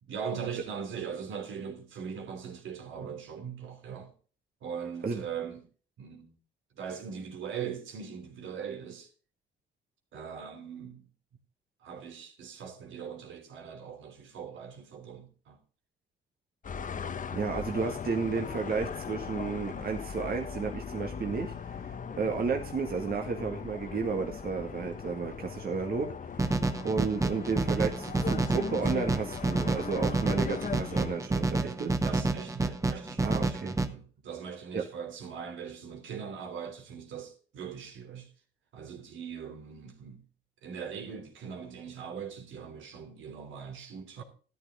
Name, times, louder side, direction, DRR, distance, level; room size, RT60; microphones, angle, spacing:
voice 1, 0.0-4.1 4.6-5.7 6.0-6.3 6.7-9.1 10.1-11.1 11.8-15.6 22.2-22.4 31.5-38.3 38.7-40.2 40.6-44.2, right 7 dB, 75° right, 3.2 m, -40 dB
sound 1, 16.6-31.2, left 6 dB, 40° left, 1.1 m, -39 dB
voice 2, 17.3-26.1 26.4-26.5 26.8-31.9 33.2-33.8 34.7-34.8, right 5 dB, 50° right, 1.9 m, -32 dB
sound 2, 26.4-33.9, right 3 dB, 15° right, 1.4 m, -29 dB
13.5 x 11.0 x 3.7 m
cardioid pair, 90°, 20 cm